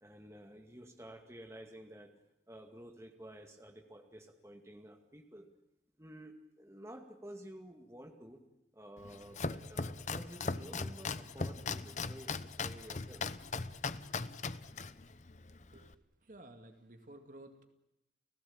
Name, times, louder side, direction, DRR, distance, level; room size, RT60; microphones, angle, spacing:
voice 1, 0.0-2.1 2.5-5.5 6.0-8.4 8.7-13.2, right 1 dB, 15° right, 4 dB, 2.2 m, -51 dB
Domestic sounds home sounds, 9.0-15.9, left 4 dB, 40° left, 0.8 m, -39 dB
voice 2, 15.7-17.7, right 1 dB, 45° right, 6 dB, 2.3 m, -54 dB
30.0 x 16.5 x 8.8 m, 0.89 s
head